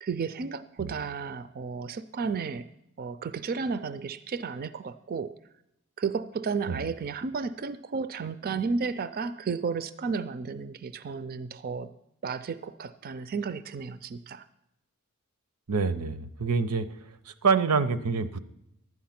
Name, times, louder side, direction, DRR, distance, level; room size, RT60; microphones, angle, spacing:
voice 1, 0.0-2.7 3.0-5.3 6.0-11.9 12.2-14.5, right 5 dB, 40° right, 14 dB, 0.4 m, -33 dB
voice 2, 15.7-16.9 17.3-18.4, right 5 dB, 85° right, 13 dB, 0.7 m, -26 dB
12.0 x 9.4 x 5.8 m, 0.85 s
head